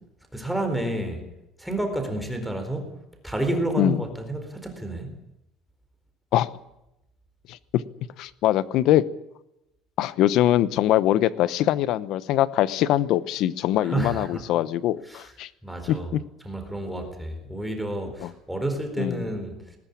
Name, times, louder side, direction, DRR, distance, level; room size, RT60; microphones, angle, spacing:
voice 1, 0.3-1.3 1.6-2.9 3.2-5.2 13.8-14.4 15.1-15.3 15.6-16.1 16.4-19.8, right 1 dB, ahead, 4 dB, 4.2 m, -30 dB
voice 2, 7.5-7.8 8.2-9.0 10.0-15.5 15.9-16.2 18.2-18.3 19.0-19.3, left 13 dB, 60° left, 16 dB, 1.0 m, -23 dB
20.0 x 19.5 x 8.6 m, 0.87 s
cardioid pair, 160°, 0 cm